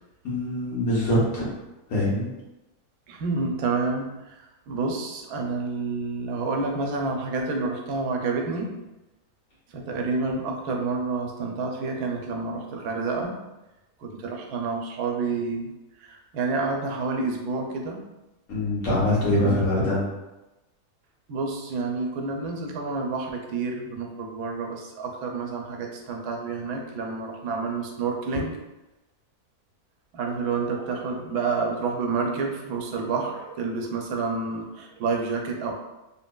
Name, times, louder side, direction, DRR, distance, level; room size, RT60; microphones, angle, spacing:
voice 1, 0.2-1.5 1.9-2.3 18.5-20.0, left 1 dB, 70° left, -7 dB, 1.5 m, -23 dB
voice 2, 3.1-8.8 9.7-13.4 14.0-15.7 16.0-18.0 19.4-19.5 21.3-28.5 30.1-35.7, right 4 dB, 90° right, 1 dB, 1.1 m, -29 dB
3.0 x 2.7 x 2.2 m, 1.0 s
omnidirectional pair, 1.6 m